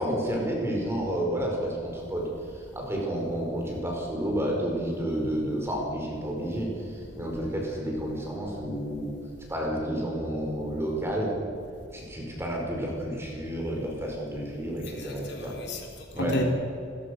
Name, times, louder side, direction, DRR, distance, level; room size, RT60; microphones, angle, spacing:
voice 1, 0.0-2.3 2.5-9.1 9.5-11.3 11.9-15.6 16.1-16.4, right 1 dB, 10° right, -1 dB, 5.1 m, -30 dB
voice 2, 14.9-16.4, left 1 dB, 55° left, 1 dB, 3.5 m, -33 dB
29.5 x 14.5 x 6.6 m, 2.6 s
head